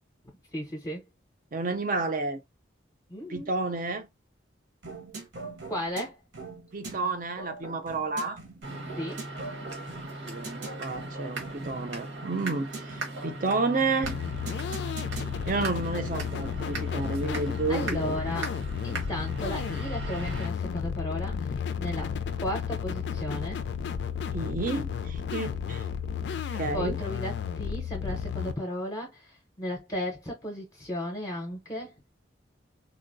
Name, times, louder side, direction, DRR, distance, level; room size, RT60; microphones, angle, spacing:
voice 1, 0.5-1.0 3.1-3.5 5.7-6.1 8.8-9.2 17.7-18.5 18.8-23.6 26.7-31.9, equal, 20° left, 0.6 m, -35 dB
voice 2, 1.5-2.4 3.3-4.1 6.7-8.4 10.2-14.2 15.5-18.2 24.3-25.8 26.5-27.0, right 3 dB, 45° right, 0.5 m, -31 dB
sound 1, 4.8-16.6, right 3 dB, 70° right, 0.9 m, -43 dB
sound 2, 8.6-20.5, right 2 dB, 85° right, 1.2 m, -39 dB
sound 3, 14.0-28.5, left 7 dB, 60° left, 0.3 m, -33 dB
3.7 x 2.0 x 2.5 m
head